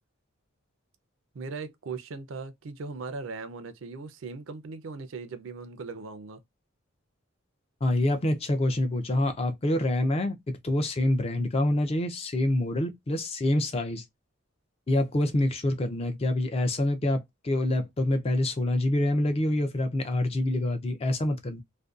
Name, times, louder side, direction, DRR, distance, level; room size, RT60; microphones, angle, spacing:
voice 1, 1.3-6.4, right 4 dB, 65° right, 0.4 m, -39 dB
voice 2, 7.8-14.0 14.9-21.6, left 1 dB, 30° left, 0.4 m, -26 dB
2.5 x 2.2 x 2.3 m
head